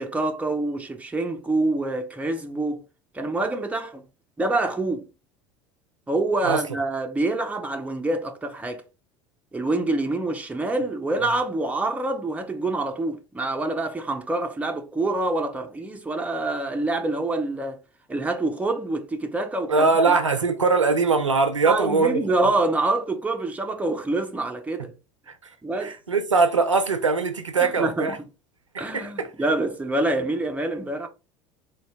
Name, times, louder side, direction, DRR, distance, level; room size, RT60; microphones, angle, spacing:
voice 1, 0.0-2.8 3.1-4.0 4.4-5.1 6.1-8.8 9.5-17.8 18.1-20.2 21.6-24.9 25.6-25.9 27.6-28.2 28.8-31.1, right 2 dB, 10° right, 0.7 m, -26 dB
voice 2, 19.7-22.5 24.8-24.9 25.8-28.2 28.7-29.3, right 4 dB, 90° right, 0.5 m, -22 dB
4.0 x 2.3 x 3.5 m
figure-of-eight pair, 70°, 15 cm